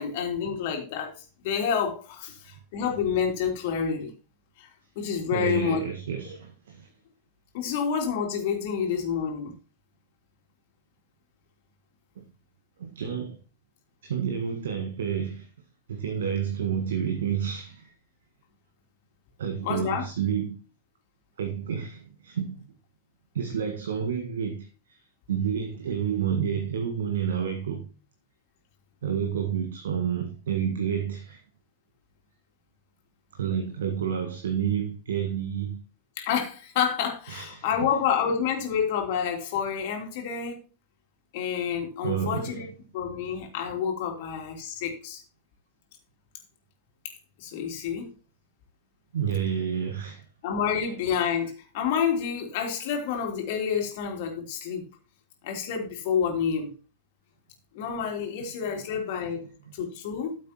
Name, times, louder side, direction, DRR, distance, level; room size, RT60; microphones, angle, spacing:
voice 1, 0.0-4.1 4.6-4.7 4.9-5.8 7.5-9.5 19.6-20.0 36.2-40.6 41.3-42.7 42.9-45.2 47.0-47.1 47.4-48.1 50.4-54.9 55.4-56.7 57.7-59.5 59.7-60.4, left 7 dB, 50° left, 3.1 m, -28 dB
voice 2, 5.3-6.9 12.8-13.4 14.0-15.5 15.9-17.9 19.4-20.6 21.4-22.7 23.3-25.0 25.3-27.9 29.0-31.4 33.3-35.8 37.3-37.6 42.0-42.7 49.1-50.2 59.6-59.7, right 8 dB, 65° right, 1.5 m, -29 dB
13.5 x 7.8 x 3.0 m
figure-of-eight pair, 90°, 0 cm